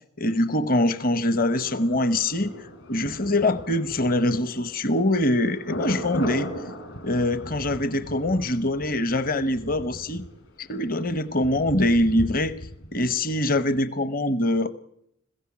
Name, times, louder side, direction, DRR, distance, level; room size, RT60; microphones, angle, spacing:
voice 1, 0.2-2.5 2.9-6.5 7.0-10.2 10.6-12.5 12.9-14.7, left 1 dB, 45° left, 14 dB, 1.0 m, -23 dB
Thunder, 1.6-13.4 13.7-13.8, equal, 65° left, 4.1 m, -38 dB
21.0 x 15.5 x 8.6 m, 0.74 s
head